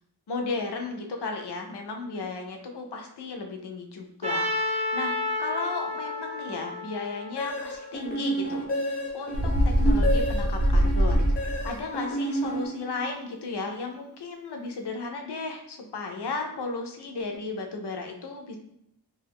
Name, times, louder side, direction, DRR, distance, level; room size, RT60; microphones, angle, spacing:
voice 1, 0.3-11.3 11.6-18.6, left 3 dB, 85° left, 2 dB, 0.6 m, -35 dB
Trumpet, 4.2-8.3, left 1 dB, 15° right, 0.5 m, -31 dB
sound 1, 7.4-13.2, right 1 dB, 20° left, 0.7 m, -31 dB
Bird, 9.3-11.8, equal, 80° right, 0.7 m, -23 dB
2.3 x 2.3 x 3.4 m, 0.76 s
wide cardioid pair, 65°, 40 cm